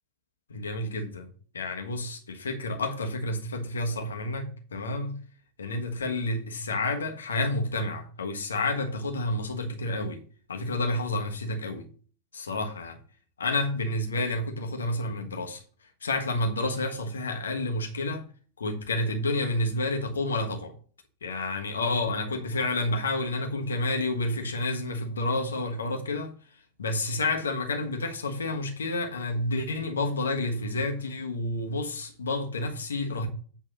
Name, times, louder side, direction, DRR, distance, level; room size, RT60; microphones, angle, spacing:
voice 1, 0.5-1.3 1.5-5.2 5.6-10.2 10.5-11.9 12.3-13.0 13.4-15.6 16.0-18.2 18.6-20.7 21.2-26.3 26.8-33.3, left 2 dB, 70° left, 1.3 m, -30 dB
8.1 x 3.5 x 6.3 m
figure-of-eight pair, 90°, 0 cm